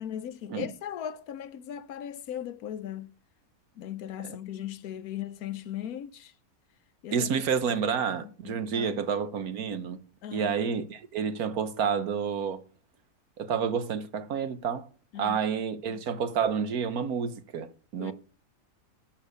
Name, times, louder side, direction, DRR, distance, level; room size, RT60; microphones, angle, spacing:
voice 1, 0.0-3.1 3.8-6.3 7.0-7.3 8.2-9.0 10.2-10.6 15.1-15.4 18.0-18.1, left 10 dB, 85° left, 1.2 m, -38 dB
voice 2, 7.1-10.0 10.3-12.6 13.4-14.9 15.2-17.7 17.9-18.1, right 6 dB, 80° right, 1.6 m, -29 dB
12.0 x 7.3 x 6.7 m
omnidirectional pair, 1.5 m